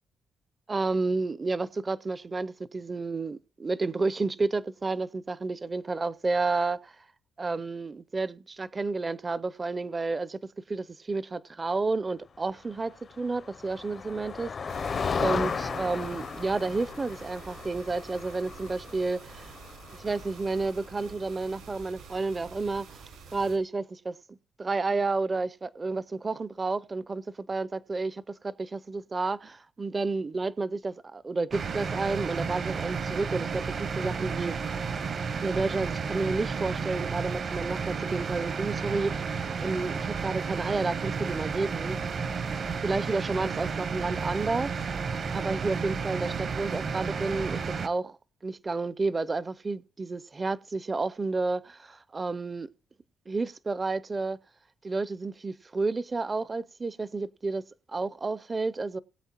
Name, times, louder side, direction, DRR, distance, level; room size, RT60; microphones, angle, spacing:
voice 1, 0.7-7.0 7.4-10.4 10.7-14.5 14.8-19.5 20.0-23.0 23.3-34.6 35.4-42.0 42.8-44.7 45.0-52.7 53.3-54.4 54.8-57.6 57.9-59.0, right 3 dB, 30° right, 0.5 m, -31 dB
Motor vehicle (road), 13.1-20.9, left 5 dB, 45° left, 0.5 m, -35 dB
sound 1, 14.7-23.6, right 5 dB, 85° right, 4.3 m, -48 dB
sound 2, 31.5-47.9, right 5 dB, 50° right, 0.9 m, -32 dB
20.0 x 8.0 x 2.9 m
cardioid pair, 90°, 0 cm